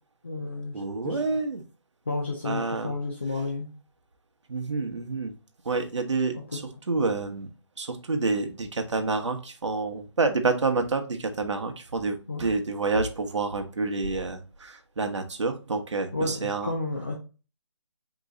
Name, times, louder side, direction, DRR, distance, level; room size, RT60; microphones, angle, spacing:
voice 1, 0.2-1.2 2.1-3.7 6.3-6.6 12.3-12.4 16.1-17.1, left 3 dB, 25° left, -1 dB, 0.4 m, -32 dB
voice 2, 0.7-1.6 2.4-2.9 4.5-5.3 5.6-6.6 6.9-7.5 7.8-16.7, right 3 dB, 80° right, 6 dB, 1.0 m, -28 dB
4.0 x 3.0 x 3.7 m, 0.34 s
hypercardioid pair, 180°, 15 cm